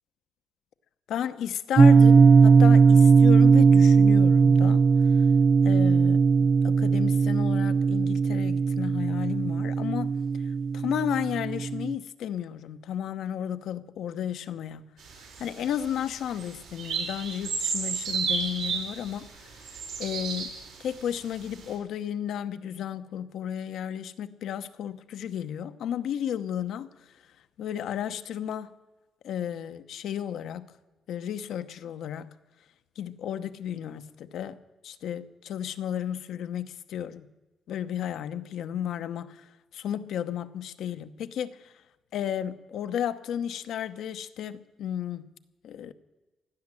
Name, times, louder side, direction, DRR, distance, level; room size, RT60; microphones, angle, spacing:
voice 1, 1.1-4.8 5.6-10.1 10.7-14.8 15.4-19.3 20.0-20.5 20.8-26.9 27.6-28.7 29.2-30.6 31.1-32.3 33.0-37.3 37.7-39.4 39.7-41.7 42.1-45.2 45.6-45.9, left 9 dB, 80° left, 0.9 m, -33 dB
sound 1, 1.8-11.9, right 5 dB, 40° right, 0.4 m, -19 dB
sound 2, 15.0-21.0 21.5-21.6, right 5 dB, 80° right, 4.7 m, -33 dB
16.5 x 11.0 x 7.6 m
cardioid pair, 80°, 0 cm